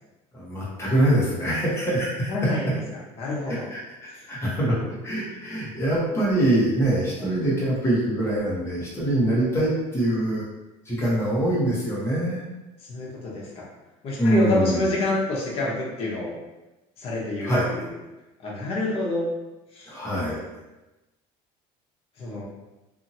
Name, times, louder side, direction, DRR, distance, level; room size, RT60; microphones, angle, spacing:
voice 1, 0.3-2.3 3.5-3.8 4.3-4.8 5.0-10.4 10.8-12.4 14.2-14.8 17.4-17.7 19.9-20.4, right 1 dB, 20° left, -7 dB, 1.1 m, -24 dB
voice 2, 2.3-2.7 3.2-3.7 4.1-4.2 7.2-7.3 11.2-11.3 12.9-13.7 14.0-16.4 17.0-17.9 18.4-19.3 19.7-19.9 22.2-22.4, left 2 dB, 45° left, -4 dB, 1.0 m, -28 dB
2.7 x 2.6 x 2.7 m, 1.1 s
cardioid pair, 130°, 14 cm